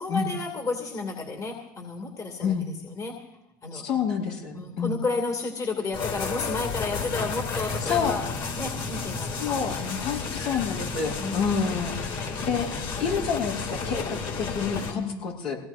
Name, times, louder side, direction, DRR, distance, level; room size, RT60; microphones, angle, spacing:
voice 1, 0.0-3.3 3.6-3.9 4.5-8.3 8.5-9.5 9.8-10.3 11.2-11.4 14.9-15.3, left 3 dB, 30° left, 2 dB, 2.6 m, -32 dB
voice 2, 3.7-5.0 7.9-8.1 9.4-12.7 13.0-15.6, left 6 dB, 70° left, 0 dB, 7.1 m, -28 dB
sound 1, 5.9-14.9, left 4 dB, 45° left, 5.4 m, -32 dB
24.5 x 17.5 x 2.7 m, 0.93 s
supercardioid pair, 95°, 12 cm